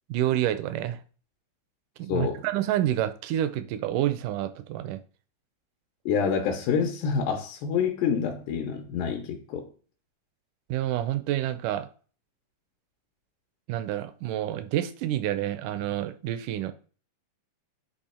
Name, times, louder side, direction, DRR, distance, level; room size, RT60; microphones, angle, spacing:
voice 1, 0.1-1.0 2.0-5.0 10.7-11.9 13.7-16.7, right 12 dB, 80° right, 2.1 m, -28 dB
voice 2, 2.1-2.4 6.1-9.7, left 6 dB, 85° left, 2.4 m, -27 dB
8.4 x 3.0 x 4.2 m
omnidirectional pair, 3.8 m